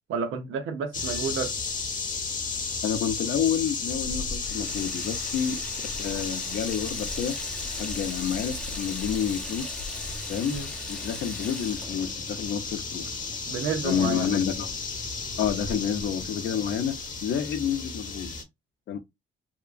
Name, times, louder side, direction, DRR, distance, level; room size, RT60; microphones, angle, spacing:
voice 1, 0.1-1.5 10.5-10.7 13.5-14.3, right 5 dB, 80° right, 0.7 m, -30 dB
sound 1, 0.9-18.4, left 4 dB, 40° left, 0.9 m, -34 dB
voice 2, 2.8-5.6 6.0-7.4 7.7-9.8 10.3-10.6 10.9-13.2 13.8-14.7 15.4-18.3 18.9-19.0, left 8 dB, 65° left, 0.5 m, -29 dB
Water tap faucet / Sink (filling or washing), 4.4-13.7, left 1 dB, 5° left, 0.5 m, -41 dB
2.9 x 2.4 x 2.3 m
cardioid pair, 90°, 20 cm